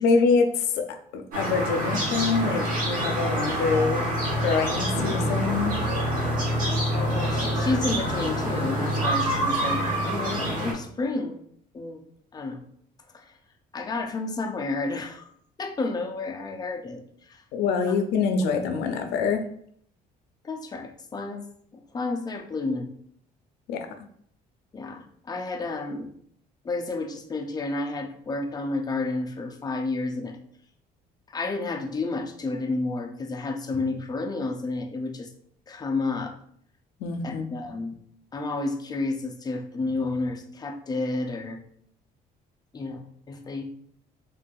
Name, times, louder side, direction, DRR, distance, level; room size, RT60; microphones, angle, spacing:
voice 1, 0.0-4.1 4.4-5.8 17.5-19.4 23.7-23.9 37.0-37.4, left 4 dB, 80° left, 6 dB, 0.5 m, -25 dB
sound 1, 1.3-10.7, equal, 50° right, 1.3 m, -26 dB
voice 2, 6.9-11.4 11.7-12.0 12.3-12.6 13.1-13.3 13.7-15.3 15.6-17.4 20.4-21.5 21.7-22.9 24.7-26.1 26.6-30.4 31.3-35.3 35.7-36.4 37.2-38.0 38.3-41.6 42.7-43.6, left 3 dB, 25° left, 3 dB, 0.4 m, -31 dB
3.7 x 2.5 x 2.2 m, 0.64 s
cardioid pair, 110°, 17 cm